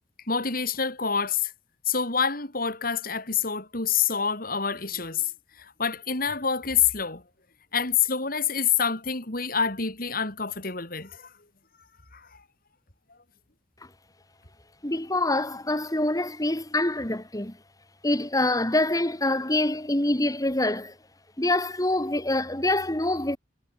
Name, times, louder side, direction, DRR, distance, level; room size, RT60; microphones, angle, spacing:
voice 1, 0.3-1.5 1.9-5.3 5.6-7.2 7.7-11.3 12.1-12.4, left 6 dB, 50° left, 4.5 m, -27 dB
voice 2, 14.8-17.5 18.0-20.9 21.4-23.4, left 1 dB, 20° left, 2.4 m, -25 dB
head